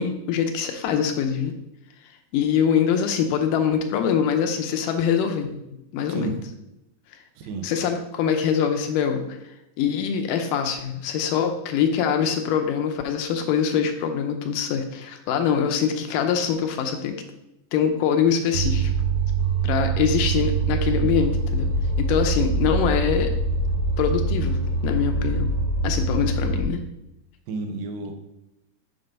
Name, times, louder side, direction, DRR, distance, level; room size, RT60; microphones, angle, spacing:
voice 1, 0.0-1.5 2.3-5.6 5.9-6.3 7.6-9.3 9.8-17.2 17.7-18.9 19.6-21.7 22.0-23.3 24.0-25.5 25.8-26.8, left 7 dB, 80° left, 5 dB, 2.1 m, -23 dB
sound 1, 18.5-26.6, right 3 dB, 55° right, 1.6 m, -24 dB
voice 2, 27.5-28.1, right 4 dB, 85° right, 4 dB, 2.6 m, -31 dB
7.9 x 3.8 x 5.2 m, 0.88 s
omnidirectional pair, 4.0 m